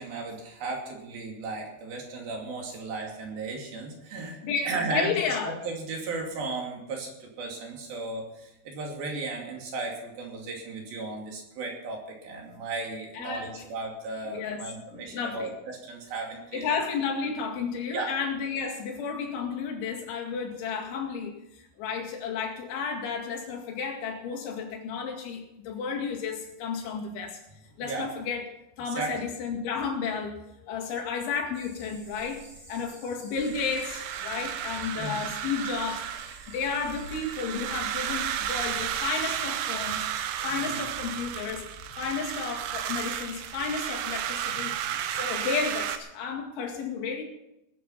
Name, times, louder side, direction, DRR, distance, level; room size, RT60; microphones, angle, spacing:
voice 1, 0.0-4.4 4.7-16.7 17.9-18.1 27.8-28.1 28.9-29.1 34.9-35.2 40.4-40.8 44.7-44.8, right 3 dB, 55° right, 0 dB, 4.1 m, -35 dB
voice 2, 4.4-5.5 13.1-13.6 14.2-14.6 14.9-15.5 16.5-27.4 27.8-28.4 28.8-32.4 32.7-36.1 36.5-40.1 40.4-41.7 42.0-44.8 45.2-47.2, left 5 dB, 80° left, 1 dB, 4.5 m, -32 dB
sound 1, 31.5-41.3, right 1 dB, 15° right, 7.9 m, -52 dB
sound 2, 33.4-46.0, right 10 dB, 85° right, 3.3 m, -33 dB
19.5 x 9.3 x 5.7 m, 0.87 s
omnidirectional pair, 5.3 m